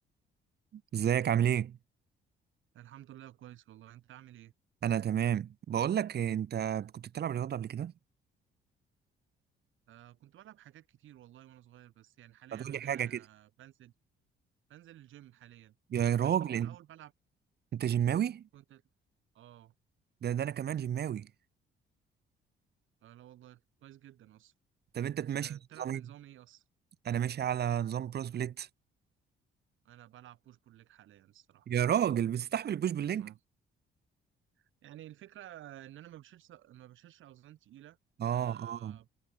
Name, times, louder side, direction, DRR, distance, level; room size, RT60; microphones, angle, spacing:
voice 1, 0.7-1.8 4.8-7.9 12.5-13.2 15.9-16.7 17.7-18.5 20.2-21.3 24.9-26.0 27.0-28.7 31.7-33.3 38.2-39.0, right 9 dB, 55° right, 1.1 m, -31 dB
voice 2, 2.7-4.5 9.9-13.9 14.7-15.7 16.2-17.1 18.5-18.8 19.3-19.7 23.0-24.5 25.3-26.6 29.8-31.7 33.2-33.4 34.6-38.0 38.2-39.1, right 13 dB, 80° right, 6.6 m, -53 dB
cardioid pair, 90°, 20 cm